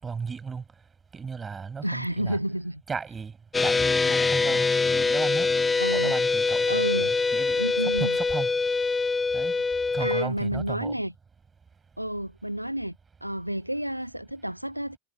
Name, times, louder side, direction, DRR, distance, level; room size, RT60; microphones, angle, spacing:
voice 1, 0.0-0.6 1.1-2.4 2.9-5.5 5.9-8.5 9.3-9.5 9.9-11.0, right 5 dB, 15° right, 7.1 m, -36 dB
voice 2, 1.8-2.8 5.8-6.1 6.7-7.2 7.6-8.2 10.0-11.1 12.0-15.0, equal, 90° right, 1.6 m, -30 dB
sound 1, 3.5-10.2, left 4 dB, 10° left, 0.7 m, -24 dB
figure-of-eight pair, 90°, 0 cm